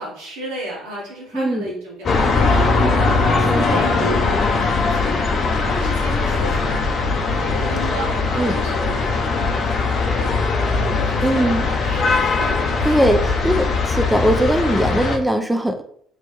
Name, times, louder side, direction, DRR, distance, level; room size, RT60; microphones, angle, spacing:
voice 1, 0.0-2.8 3.3-5.2 5.5-7.0 7.3-9.7 9.9-10.4 10.7-13.0 13.4-13.6, right 1 dB, 85° right, -5 dB, 1.5 m, -33 dB
voice 2, 1.3-1.7 3.4-3.8 8.3-8.6 11.2-11.7 12.9-15.8, right 1 dB, 10° right, 6 dB, 0.4 m, -20 dB
sound 1, 2.0-15.2, left 4 dB, 55° left, 0.6 m, -20 dB
3.0 x 3.0 x 3.2 m, 0.63 s
supercardioid pair, 65°, 0 cm